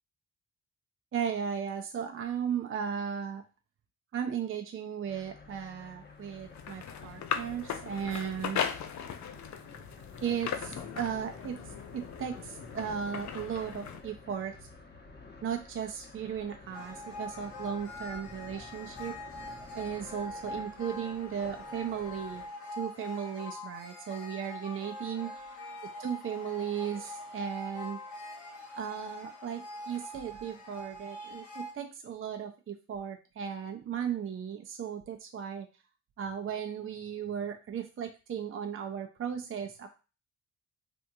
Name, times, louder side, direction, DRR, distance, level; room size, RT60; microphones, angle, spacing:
voice 1, 1.1-3.4 4.1-8.6 10.2-11.6 11.9-14.7 15.4-19.2 19.7-22.4 22.8-25.3 26.0-28.0 28.7-35.7 36.2-39.9, right 8 dB, 35° right, 4 dB, 0.5 m, -36 dB
sound 1, 5.1-22.5, left 3 dB, 30° left, 0.9 m, -51 dB
sound 2, 6.2-14.0, left 8 dB, 50° left, 0.5 m, -38 dB
sound 3, 16.7-31.7, left 1 dB, 90° left, 1.3 m, -43 dB
3.4 x 2.6 x 2.6 m, 0.32 s
hypercardioid pair, 45°, 36 cm